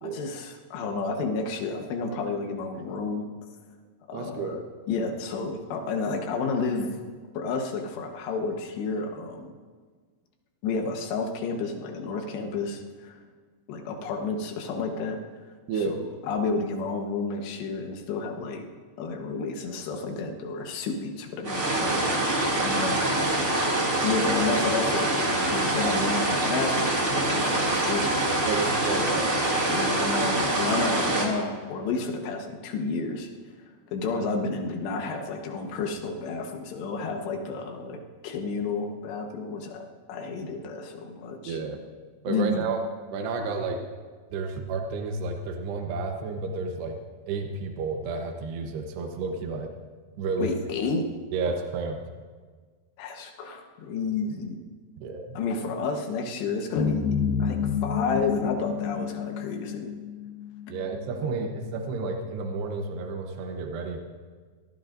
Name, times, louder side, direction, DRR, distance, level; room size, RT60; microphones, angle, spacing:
voice 1, 0.0-3.3 4.1-7.0 7.3-9.5 10.6-13.2 13.7-15.2 15.7-16.0 16.2-18.6 19.0-23.3 24.0-28.1 29.0-29.2 29.7-33.3 33.9-38.0 38.2-41.6 42.3-42.7 50.4-51.1 53.0-54.6 55.3-59.9, left 4 dB, 85° left, 3 dB, 3.4 m, -31 dB
voice 2, 4.1-4.6 15.7-16.0 28.5-29.3 41.5-41.8 42.2-42.8 43.1-43.8 44.3-47.0 47.3-49.7 50.2-50.5 51.3-52.0 55.0-55.4 60.7-64.0, right 4 dB, 80° right, 3 dB, 3.2 m, -31 dB
sound 1, 21.4-31.3, right 2 dB, 25° right, 1.8 m, -25 dB
sound 2, 56.8-61.1, left 7 dB, 70° left, 3.2 m, -29 dB
23.5 x 19.0 x 2.6 m, 1.5 s
omnidirectional pair, 4.8 m